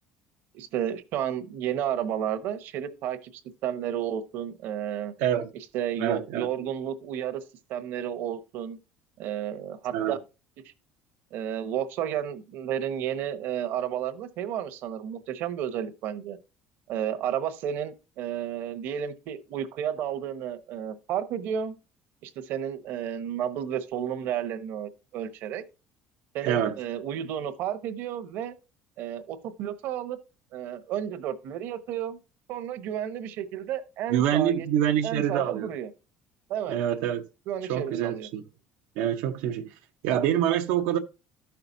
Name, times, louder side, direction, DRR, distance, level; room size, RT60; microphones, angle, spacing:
voice 1, 0.5-3.3 3.6-5.1 5.7-7.4 7.7-8.8 9.2-10.2 11.3-16.4 16.9-21.7 22.2-25.6 26.3-28.5 29.0-30.2 30.5-32.2 32.5-34.7 35.0-35.9 36.5-36.8 37.5-38.3, right 9 dB, 60° right, 1.0 m, -32 dB
voice 2, 5.2-5.5 6.0-6.5 9.9-10.2 26.4-26.7 34.1-35.7 36.7-37.2 37.7-38.4 39.0-39.7 40.0-41.0, right 10 dB, 90° right, 0.8 m, -26 dB
14.0 x 5.8 x 2.7 m
cardioid pair, 165°, 4 cm